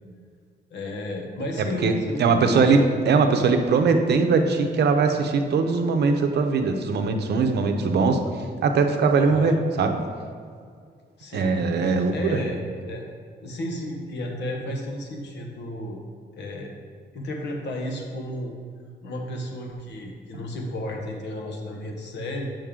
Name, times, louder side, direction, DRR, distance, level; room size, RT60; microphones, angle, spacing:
voice 1, 0.7-2.8 9.1-9.6 11.2-11.5 12.1-13.1 13.4-16.0 16.3-16.7 17.1-18.5 19.0-22.4, left 1 dB, 75° left, 1 dB, 1.1 m, -33 dB
voice 2, 2.2-8.2 8.6-10.0 11.3-12.1, right 4 dB, 70° right, 5 dB, 0.7 m, -20 dB
7.2 x 5.2 x 3.7 m, 2.1 s
wide cardioid pair, 150°, 18 cm